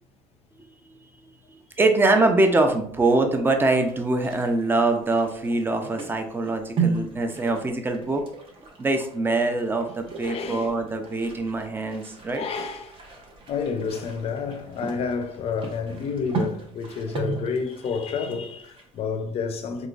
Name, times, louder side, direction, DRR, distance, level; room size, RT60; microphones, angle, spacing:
voice 1, 1.8-8.2 8.8-12.5, right 2 dB, 15° right, 0.5 m, -23 dB
sound 1, 3.6-19.0, right 5 dB, 40° right, 0.9 m, -36 dB
voice 2, 10.2-10.7 12.3-13.0 13.5-19.9, left 5 dB, 45° left, 0.5 m, -29 dB
3.8 x 3.0 x 2.4 m
cardioid pair, 105°, 14 cm